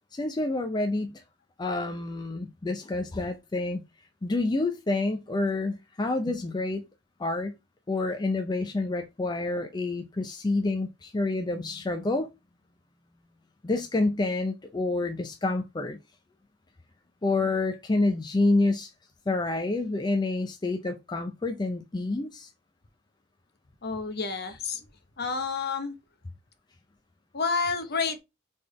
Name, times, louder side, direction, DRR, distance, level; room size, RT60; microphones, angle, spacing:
voice 1, 0.1-1.2 1.6-3.8 4.2-6.8 7.2-7.6 7.9-12.3 13.6-16.0 17.2-18.9 19.3-22.5, left 2 dB, 20° left, 0.4 m, -28 dB
voice 2, 23.8-24.8 25.2-25.9 27.3-28.2, left 4 dB, 55° left, 0.8 m, -29 dB
4.2 x 3.4 x 3.1 m
head